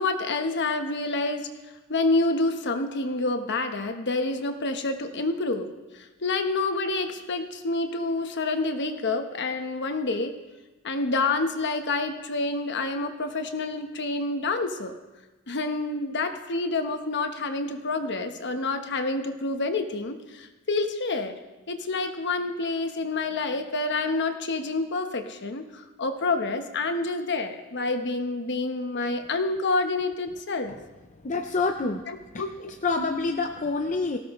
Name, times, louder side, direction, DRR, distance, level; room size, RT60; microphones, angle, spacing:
voice 1, 0.0-1.5 1.9-5.7 5.9-10.4 10.8-15.0 15.5-21.3 21.7-30.7 32.1-32.7, left 3 dB, 50° left, 7 dB, 1.1 m, -28 dB
voice 2, 31.2-32.0 32.3-32.4 32.8-34.2, left 3 dB, 35° left, 4 dB, 0.6 m, -26 dB
19.0 x 17.0 x 3.2 m, 1.1 s
head